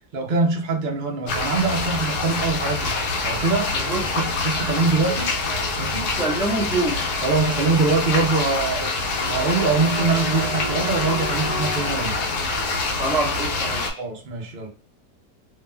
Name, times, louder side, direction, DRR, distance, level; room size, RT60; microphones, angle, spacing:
voice 1, 0.1-3.0 3.2-3.8 4.1-5.3 5.8-6.1 7.2-9.0 9.3-12.2 14.0-14.7, right 3 dB, 90° right, 0.4 m, -23 dB
sound 1, 1.3-13.9, left 3 dB, 70° left, 1.2 m, -25 dB
voice 2, 6.1-7.0 13.0-14.0, right 2 dB, 5° right, 1.0 m, -25 dB
2.8 x 2.4 x 2.2 m
omnidirectional pair, 1.8 m